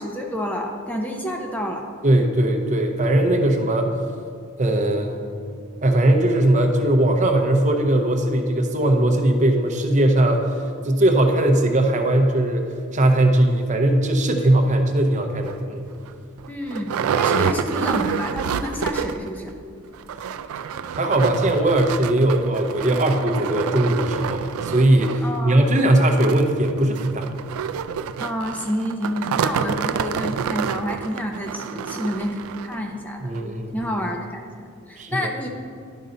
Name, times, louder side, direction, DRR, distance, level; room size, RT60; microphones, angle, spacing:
voice 1, 0.0-1.9 16.5-19.5 25.2-25.7 28.2-33.3 33.7-35.5, equal, 10° left, 1 dB, 0.5 m, -29 dB
voice 2, 2.0-3.9 4.6-5.2 5.8-10.5 10.8-12.7 12.9-15.8 20.9-27.3 33.2-33.7 35.0-35.3, right 1 dB, 35° right, 4 dB, 0.6 m, -19 dB
sound 1, 15.4-15.6 16.1-16.2 16.4-19.3 19.6-19.7 20.0-32.8 33.4-33.5 33.8-33.9, right 7 dB, 80° right, 0.3 m, -28 dB
10.5 x 5.4 x 3.8 m, 2.3 s
head